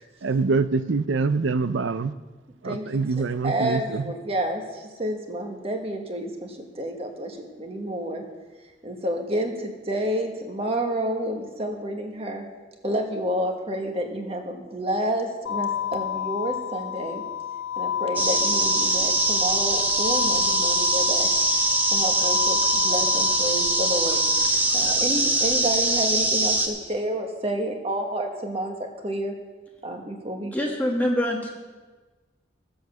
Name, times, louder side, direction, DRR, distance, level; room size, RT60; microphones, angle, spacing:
voice 1, 0.2-2.1 2.6-4.0, right 4 dB, 90° right, 0.6 m, -24 dB
voice 2, 2.6-8.2 8.8-12.4 12.8-17.2 17.8-21.3 21.9-24.2 24.7-28.7 29.0-29.3 29.8-30.6, right 1 dB, 30° right, 1.4 m, -29 dB
sound 1, 15.5-24.5, left 10 dB, 75° left, 0.3 m, -31 dB
sound 2, 18.2-26.7, right 1 dB, 10° right, 1.3 m, -22 dB
voice 3, 30.5-31.5, left 1 dB, 10° left, 1.2 m, -24 dB
14.0 x 7.8 x 6.8 m
head